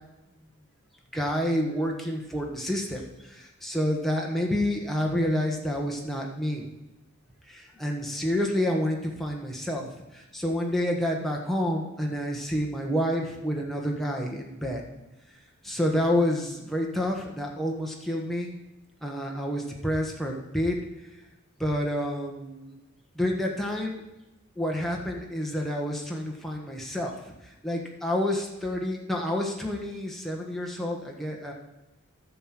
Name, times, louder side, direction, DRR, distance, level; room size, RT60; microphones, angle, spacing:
voice 1, 1.1-6.6 7.5-14.8 15.6-18.6 19.0-21.1 21.6-22.8 23.1-24.0 24.5-31.5, equal, ahead, 0 dB, 1.4 m, -29 dB
11.0 x 6.6 x 6.0 m, 1.0 s
head